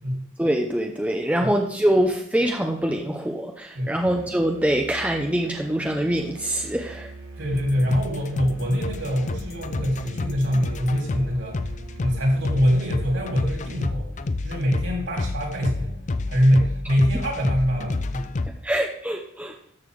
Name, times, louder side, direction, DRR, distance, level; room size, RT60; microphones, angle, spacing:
voice 1, 0.4-7.1 18.6-19.5, right 1 dB, 5° right, 2 dB, 0.7 m, -24 dB
Musical instrument, 3.9-13.9, right 3 dB, 85° right, 2.4 m, -42 dB
voice 2, 7.4-11.6 12.0-14.1 14.4-15.9 16.3-18.3, equal, 60° right, -1 dB, 3.7 m, -24 dB
sound 1, 7.5-18.5, left 2 dB, 35° left, 0.5 m, -30 dB
13.0 x 6.6 x 3.7 m, 0.68 s
head